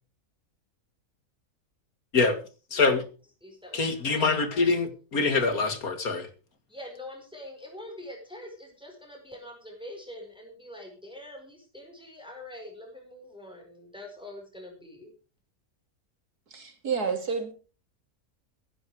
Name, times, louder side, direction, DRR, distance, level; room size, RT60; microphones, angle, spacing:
voice 1, 2.7-3.1 3.7-6.3, left 4 dB, 65° left, 9 dB, 2.5 m, -25 dB
voice 2, 3.4-4.8 6.7-15.1, left 1 dB, 5° right, 1 dB, 4.8 m, -44 dB
voice 3, 16.5-17.5, right 5 dB, 80° right, 6 dB, 3.3 m, -30 dB
16.0 x 11.0 x 4.8 m, 0.35 s
omnidirectional pair, 1.6 m